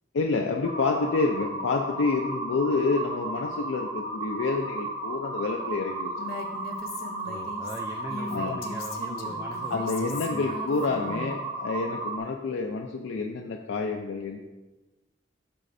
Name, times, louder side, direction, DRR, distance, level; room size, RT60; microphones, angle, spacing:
voice 1, 0.1-6.4 8.3-8.6 9.7-14.4, left 4 dB, 90° left, 2 dB, 0.4 m, -28 dB
sound 1, 0.6-12.2, right 2 dB, 45° right, 1.5 m, -34 dB
Female speech woman speaking, 6.2-11.3, left 3 dB, 50° left, 0.7 m, -39 dB
voice 2, 7.2-10.6, right 1 dB, 15° right, 1 dB, 0.3 m, -40 dB
11.5 x 4.1 x 2.6 m, 1.1 s
head